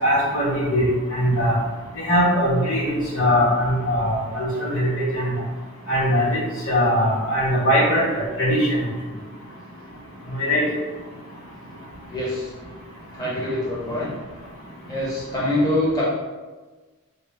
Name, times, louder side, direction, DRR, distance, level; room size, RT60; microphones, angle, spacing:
voice 1, 0.0-0.8 1.1-1.6 2.0-5.3 5.9-6.4 6.6-8.8 10.4-10.6, equal, 65° left, -6 dB, 1.3 m, -21 dB
voice 2, 12.1-12.5 13.1-14.1 14.9-16.0, left 1 dB, 15° left, -8 dB, 0.7 m, -24 dB
5.2 x 2.0 x 3.2 m, 1.3 s
head